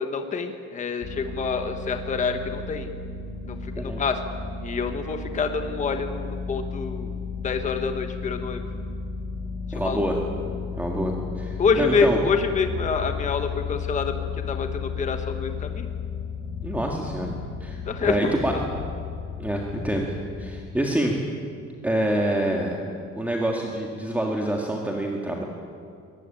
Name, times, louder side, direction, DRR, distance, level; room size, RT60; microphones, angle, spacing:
voice 1, 0.0-2.9 3.5-4.2 4.6-7.2 7.4-8.6 9.7-10.0 11.6-15.9 17.8-18.4, left 5 dB, 25° left, 6 dB, 1.2 m, -27 dB
sound 1, 1.0-20.6, left 5 dB, 40° left, 3.4 m, -34 dB
voice 2, 9.7-10.2 10.8-12.2 16.6-18.5 19.4-21.2 21.8-22.8 23.1-25.4, right 1 dB, 5° right, 0 dB, 1.7 m, -26 dB
23.5 x 19.0 x 9.0 m, 2.3 s
cardioid pair, 175°, 29 cm